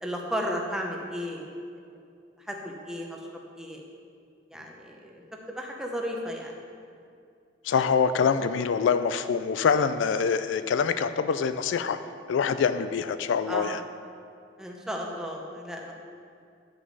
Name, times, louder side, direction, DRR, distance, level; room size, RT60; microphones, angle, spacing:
voice 1, 0.0-1.5 1.7-1.8 2.5-3.2 3.6-3.8 4.5-5.2 5.5-6.6 13.5-13.7 14.6-15.9, equal, 5° right, 0 dB, 0.7 m, -34 dB
voice 2, 7.6-12.0 12.3-13.8, left 6 dB, 85° left, 11 dB, 0.3 m, -25 dB
9.0 x 6.1 x 4.0 m, 2.4 s
head